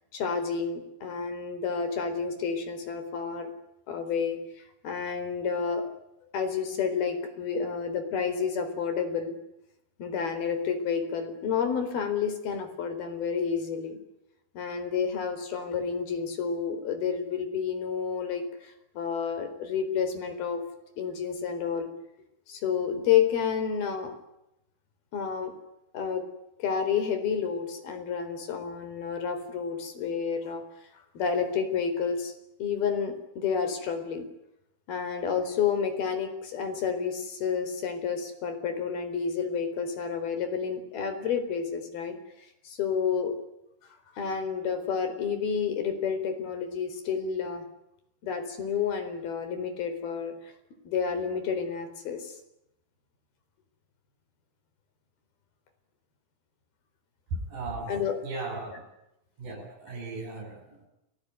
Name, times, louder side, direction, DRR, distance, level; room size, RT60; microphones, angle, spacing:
voice 1, 0.1-3.5 3.9-5.9 6.3-9.4 10.0-14.0 14.5-20.6 21.0-21.9 22.5-24.1 25.1-25.5 25.9-26.2 26.6-30.6 31.1-32.3 32.6-34.3 34.9-43.4 44.2-47.6 48.2-50.3 50.8-52.4 57.9-58.2, left 6 dB, 70° left, 8 dB, 6.1 m, -30 dB
voice 2, 57.3-57.9 58.2-58.7 59.4-60.9, right 3 dB, 60° right, 2 dB, 9.2 m, -36 dB
30.0 x 18.5 x 9.6 m, 0.85 s
omnidirectional pair, 4.6 m